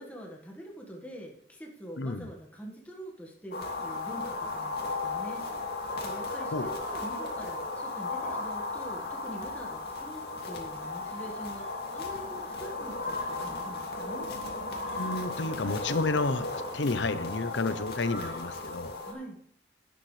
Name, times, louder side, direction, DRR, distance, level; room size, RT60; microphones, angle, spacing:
voice 1, 0.0-5.8 6.0-14.3 19.0-19.4, right 1 dB, 10° left, -1 dB, 1.7 m, -45 dB
voice 2, 2.0-2.3 6.5-6.7 14.9-18.9, left 3 dB, 85° left, 12 dB, 0.8 m, -31 dB
sound 1, 3.5-19.1, left 3 dB, 60° left, 2.5 m, -35 dB
12.0 x 10.5 x 3.3 m, 0.67 s
head